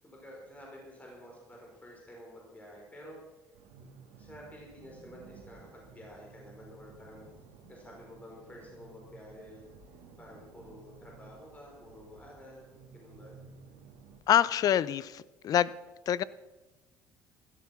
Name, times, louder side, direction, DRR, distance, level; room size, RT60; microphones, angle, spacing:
voice 1, 0.0-3.2 3.8-7.2 7.7-9.7 10.2-13.4, equal, 20° left, -2 dB, 5.3 m, -50 dB
sound 1, 3.5-14.2, right 5 dB, 85° right, 2.1 m, -54 dB
voice 2, 14.3-15.7 16.1-16.2, left 10 dB, 55° left, 19 dB, 0.6 m, -26 dB
15.5 x 13.0 x 6.1 m, 1.1 s
supercardioid pair, 95°, 8 cm